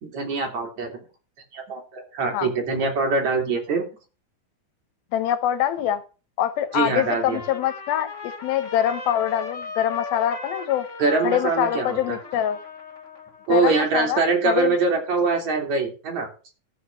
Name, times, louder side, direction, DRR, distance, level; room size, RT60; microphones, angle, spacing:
voice 1, 0.0-1.0 1.5-3.8 6.7-7.4 11.0-12.2 13.5-16.3, right 4 dB, 50° right, 2 dB, 3.8 m, -23 dB
voice 2, 5.1-6.0 6.4-10.9 11.2-12.6 13.5-14.8, left 11 dB, 80° left, 12 dB, 2.8 m, -24 dB
Trumpet, 6.7-13.5, left 4 dB, 40° left, 1.0 m, -38 dB
12.5 x 5.1 x 7.5 m, 0.34 s
omnidirectional pair, 4.2 m